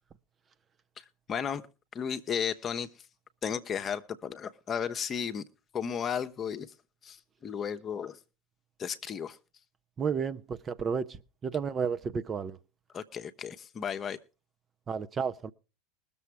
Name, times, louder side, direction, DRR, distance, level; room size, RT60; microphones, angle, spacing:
voice 1, 1.3-1.6 1.9-2.9 3.4-5.4 5.7-6.7 7.0-7.2 7.4-8.2 8.8-9.4 12.9-14.2, left 7 dB, 35° left, 1.0 m, -34 dB
voice 2, 10.0-12.6 14.9-15.5, right 6 dB, 30° right, 0.8 m, -32 dB
20.5 x 7.1 x 4.7 m
hypercardioid pair, 85°, 0 cm